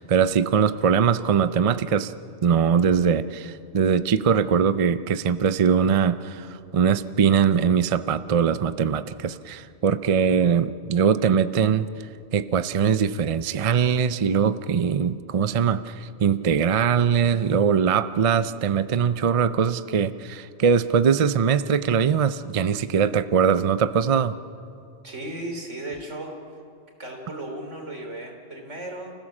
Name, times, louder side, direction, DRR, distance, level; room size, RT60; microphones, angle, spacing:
voice 1, 0.0-2.1 2.4-11.9 12.3-24.3, right 7 dB, 40° right, 13 dB, 0.5 m, -21 dB
voice 2, 25.0-26.6 27.0-29.1, right 1 dB, 90° right, 2 dB, 3.5 m, -35 dB
30.0 x 15.5 x 7.2 m, 2.4 s
omnidirectional pair, 1.2 m